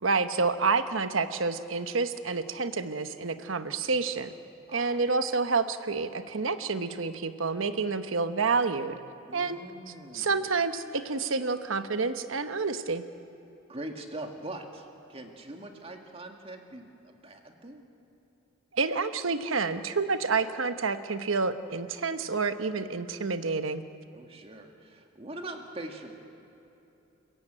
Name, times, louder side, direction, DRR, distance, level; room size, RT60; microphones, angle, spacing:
voice 1, 0.0-4.3 4.7-9.0 9.3-9.6 10.1-13.0 18.7-23.8, right 4 dB, 90° right, 10 dB, 1.0 m, -29 dB
voice 2, 4.7-5.0 9.3-10.4 13.7-17.8 24.1-26.1, right 1 dB, 30° right, 3 dB, 1.9 m, -42 dB
30.0 x 14.5 x 9.0 m, 2.9 s
head